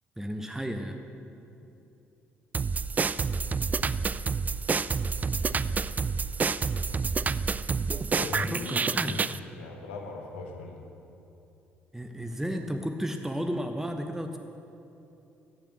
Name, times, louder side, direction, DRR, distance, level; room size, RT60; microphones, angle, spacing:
voice 1, 0.2-1.0 8.5-9.2 11.9-14.4, equal, 5° right, 6 dB, 0.9 m, -33 dB
sound 1, 2.5-9.4, right 5 dB, 25° right, 0.3 m, -28 dB
voice 2, 5.4-5.7 8.1-9.2 9.5-10.8, left 3 dB, 75° left, 1 dB, 1.4 m, -39 dB
16.5 x 7.0 x 6.2 m, 2.8 s
figure-of-eight pair, 45°, 6 cm